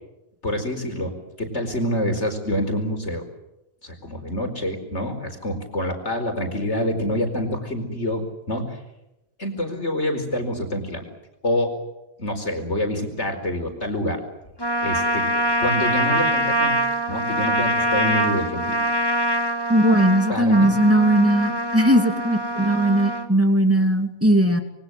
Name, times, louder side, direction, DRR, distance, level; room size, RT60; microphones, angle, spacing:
voice 1, 0.4-1.1 1.4-3.2 3.8-8.8 9.4-11.0 11.4-11.8 12.2-14.2 14.8-15.3 15.6-16.8 17.1-18.8 20.3-20.7, left 1 dB, 50° left, 5 dB, 4.9 m, -26 dB
Trumpet, 14.6-23.3, right 1 dB, 15° left, 1.8 m, -24 dB
voice 2, 19.7-24.6, right 1 dB, 10° right, 6 dB, 2.7 m, -18 dB
26.5 x 23.5 x 7.7 m, 0.91 s
omnidirectional pair, 1.5 m